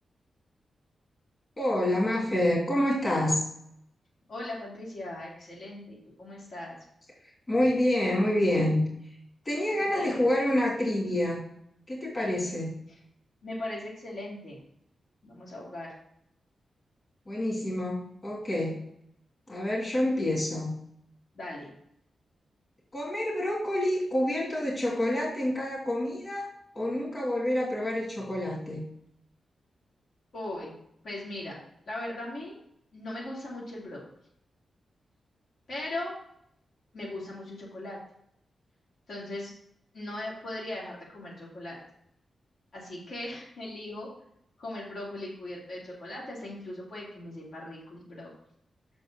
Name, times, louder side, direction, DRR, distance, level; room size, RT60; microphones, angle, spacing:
voice 1, 1.6-3.4 7.5-8.8 9.4-11.4 11.9-12.7 17.3-18.8 19.5-20.8 22.9-26.5 26.7-28.8, left 1 dB, 25° left, -4 dB, 2.9 m, -27 dB
voice 2, 4.3-6.8 9.7-10.3 13.4-14.6 15.2-15.9 21.3-21.7 30.3-30.7 31.0-31.6 31.9-32.6 32.9-34.0 35.7-36.2 36.9-38.0 39.1-39.5 39.9-41.8 42.7-44.1 44.6-48.3, left 1 dB, 65° left, -5 dB, 2.8 m, -39 dB
6.3 x 5.3 x 6.5 m, 0.71 s
wide cardioid pair, 170°, 0 cm